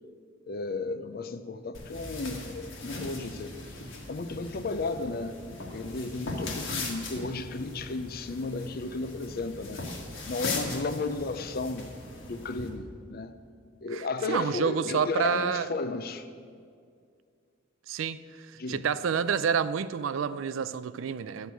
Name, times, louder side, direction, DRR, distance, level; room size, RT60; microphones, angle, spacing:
voice 1, 0.5-3.5 4.1-5.3 5.7-9.8 10.3-11.9 12.3-13.3 13.8-16.3 18.6-18.9, left 3 dB, 50° left, 0.5 m, -34 dB
sound 1, 1.7-12.7, left 2 dB, 65° left, 1.6 m, -39 dB
voice 2, 13.9-15.7 17.9-18.2 18.5-21.5, right 6 dB, 80° right, 0.4 m, -29 dB
11.0 x 4.6 x 8.1 m
head